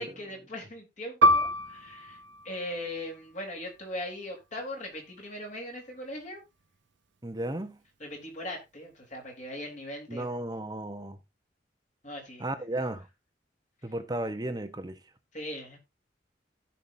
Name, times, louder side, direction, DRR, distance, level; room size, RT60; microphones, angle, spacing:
voice 1, 0.0-2.2 2.4-6.4 8.0-10.3 12.0-12.5 15.3-15.8, left 1 dB, 40° left, 4.0 m, -39 dB
Piano, 1.2-6.3 6.6-6.8 7.5-7.9, equal, 85° right, 0.7 m, -29 dB
voice 2, 7.2-7.8 10.1-11.2 12.4-13.1 13.8-15.0, right 1 dB, 20° right, 1.1 m, -34 dB
16.5 x 5.9 x 2.8 m
head